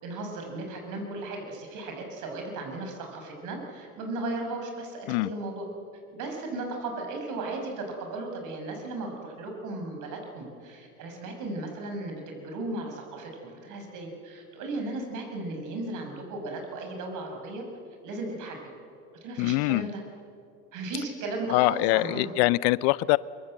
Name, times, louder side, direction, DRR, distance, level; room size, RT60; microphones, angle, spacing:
voice 1, 0.0-5.7 6.1-17.6 18.0-18.6 19.2-20.0 20.7-22.3, right 2 dB, 50° right, 3 dB, 6.4 m, -36 dB
voice 2, 19.4-19.9 21.5-23.2, left 22 dB, 55° left, 21 dB, 0.5 m, -23 dB
23.5 x 23.0 x 7.9 m, 2.5 s
hypercardioid pair, 80°, 39 cm